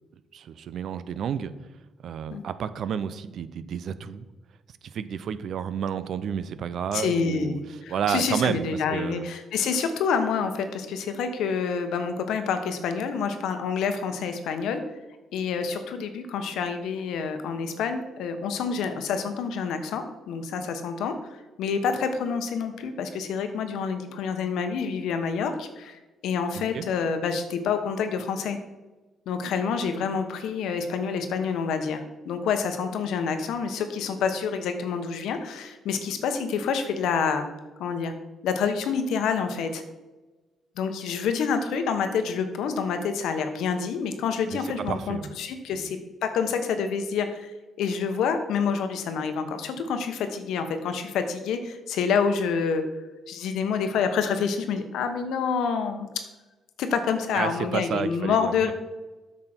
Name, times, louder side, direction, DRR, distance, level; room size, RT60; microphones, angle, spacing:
voice 1, 0.3-1.5 2.0-4.2 4.8-7.6 7.9-9.3 26.5-26.9 44.5-44.6 44.9-45.4 45.7-45.9 57.3-58.7, right 8 dB, 65° right, 14 dB, 0.6 m, -30 dB
voice 2, 6.9-14.8 15.3-28.6 29.3-37.5 37.8-38.1 38.4-39.8 40.8-47.5 47.8-52.9 53.3-56.1 56.8-58.7, left 6 dB, 85° left, 8 dB, 1.0 m, -28 dB
8.7 x 6.1 x 4.4 m, 1.2 s
cardioid pair, 90°, 0 cm